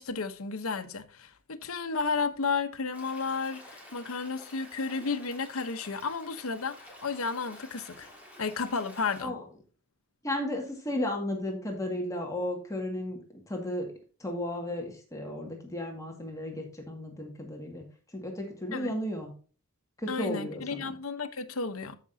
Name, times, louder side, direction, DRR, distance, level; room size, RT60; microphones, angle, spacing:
voice 1, 0.0-8.1 8.4-9.4 18.7-18.9 20.1-22.0, left 4 dB, 80° left, 1.0 m, -33 dB
Stream, 2.9-9.2, left 1 dB, 5° right, 3.2 m, -50 dB
voice 2, 10.2-13.2 13.5-13.9 14.2-17.8 18.1-19.3 20.0-20.9, left 1 dB, 15° left, 1.9 m, -34 dB
14.0 x 6.0 x 2.7 m
head